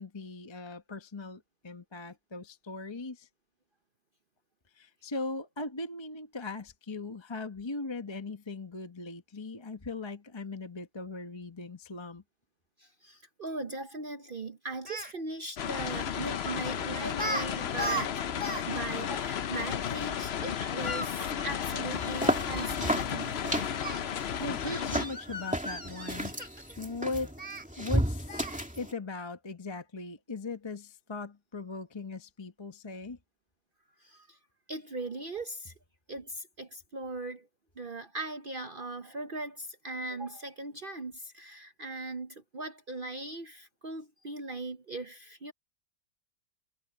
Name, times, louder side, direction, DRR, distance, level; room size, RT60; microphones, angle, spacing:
voice 1, 0.0-3.3 4.8-12.2 24.4-26.4 26.8-27.3 27.8-28.5 28.8-33.2, left 3 dB, 20° left, 1.0 m, -39 dB
voice 2, 12.8-23.4 34.0-34.4 34.7-35.7 36.1-37.5 37.8-45.5, right 2 dB, 50° right, 0.6 m, -39 dB
Speech, 14.9-15.1 16.5-16.7 17.1-17.5 17.7-18.6 18.9-19.0 20.6-22.7 23.8-24.0 24.6-26.7 27.4-27.6 28.3-28.6, right 1 dB, 25° right, 3.1 m, -37 dB
sound 1, 15.6-25.1, left 9 dB, 75° left, 0.5 m, -33 dB
sound 2, 21.9-28.9, equal, 5° right, 2.5 m, -33 dB
omnidirectional pair, 2.0 m